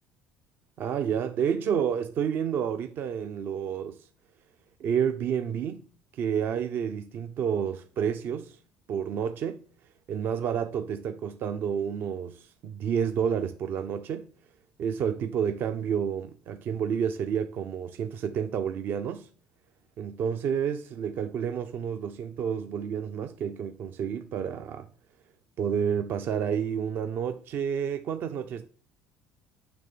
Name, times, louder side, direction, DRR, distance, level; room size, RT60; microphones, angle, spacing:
voice 1, 0.8-4.0 4.8-5.8 6.1-8.6 8.9-9.6 10.1-14.3 14.8-19.3 20.0-24.9 25.6-28.7, right 8 dB, 55° right, 0.6 m, -30 dB
9.2 x 3.2 x 6.7 m
supercardioid pair, 95°, 4 cm